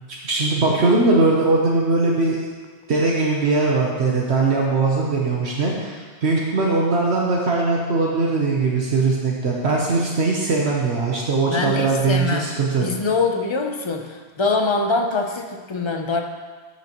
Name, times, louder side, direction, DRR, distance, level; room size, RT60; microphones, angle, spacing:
voice 1, 0.2-2.4 2.9-12.9, right 3 dB, 75° right, -2 dB, 1.2 m, -20 dB
voice 2, 11.5-12.4 12.8-16.2, left 3 dB, 30° left, 3 dB, 0.6 m, -23 dB
13.5 x 6.0 x 3.0 m, 1.5 s
omnidirectional pair, 1.1 m